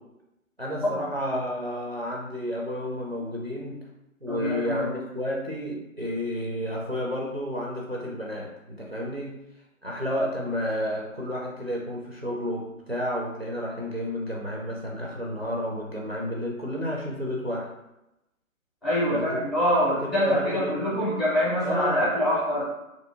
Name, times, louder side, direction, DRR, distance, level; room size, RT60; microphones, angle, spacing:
voice 1, 0.6-3.8 4.2-9.4 9.8-17.7 19.1-19.4 20.0-21.0 21.6-22.1, equal, 50° right, -3 dB, 0.4 m, -31 dB
voice 2, 4.3-4.9 18.8-22.6, equal, ahead, -11 dB, 0.6 m, -25 dB
2.7 x 2.7 x 2.6 m, 0.92 s
figure-of-eight pair, 180°, 42 cm